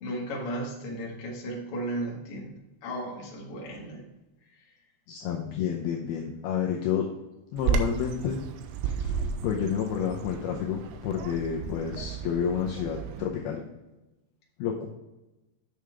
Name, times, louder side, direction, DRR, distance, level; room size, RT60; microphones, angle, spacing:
voice 1, 0.0-2.5 2.8-4.0 8.8-9.2, right 1 dB, 55° left, -2 dB, 1.6 m, -35 dB
voice 2, 5.1-7.1 7.5-8.5 9.4-13.6 14.6-14.9, left 8 dB, 85° left, 0 dB, 2.2 m, -29 dB
Bird vocalization bird call bird song, 7.6-13.3, right 6 dB, 85° right, 2.9 m, -33 dB
9.0 x 6.6 x 3.5 m, 1.0 s
omnidirectional pair, 5.5 m